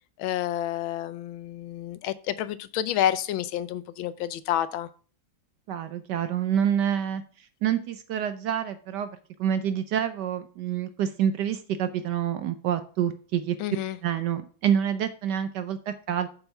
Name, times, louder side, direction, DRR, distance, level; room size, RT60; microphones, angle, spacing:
voice 1, 0.2-4.9 13.6-14.0, left 12 dB, 85° left, 1.4 m, -29 dB
voice 2, 5.7-13.6 14.0-16.3, right 9 dB, 70° right, 1.1 m, -27 dB
7.0 x 5.6 x 5.4 m
omnidirectional pair, 2.1 m